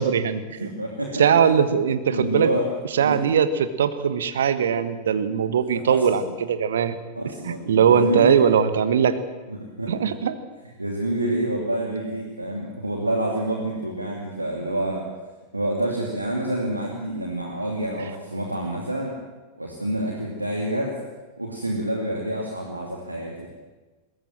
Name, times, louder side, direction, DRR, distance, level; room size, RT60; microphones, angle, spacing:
voice 1, 0.0-0.7 1.2-2.5 2.9-7.0 7.5-9.2 9.9-10.4, right 7 dB, 65° right, 12 dB, 1.4 m, -20 dB
voice 2, 0.6-1.3 2.0-2.7 3.0-3.2 5.9-6.3 7.2-8.4 9.5-10.1 10.8-15.1 15.5-19.2 19.6-21.0 21.4-23.5, right 1 dB, 85° right, 0 dB, 2.5 m, -28 dB
21.5 x 17.5 x 7.6 m, 1.3 s
figure-of-eight pair, 90°, 0 cm